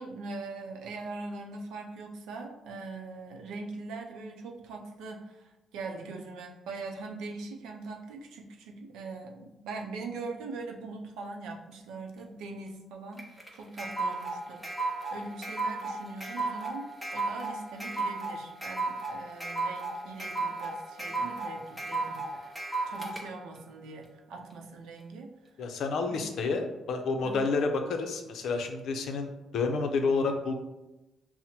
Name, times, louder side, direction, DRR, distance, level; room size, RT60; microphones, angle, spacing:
voice 1, 0.0-22.5 22.9-25.3 26.0-26.6 27.2-27.4, right 3 dB, 90° right, 1 dB, 0.6 m, -42 dB
sound 1, 13.2-23.2, right 3 dB, 10° right, 0.8 m, -34 dB
voice 2, 25.6-30.5, left 4 dB, 70° left, 5 dB, 0.5 m, -29 dB
5.8 x 2.1 x 2.8 m, 0.99 s
cardioid pair, 90°, 0 cm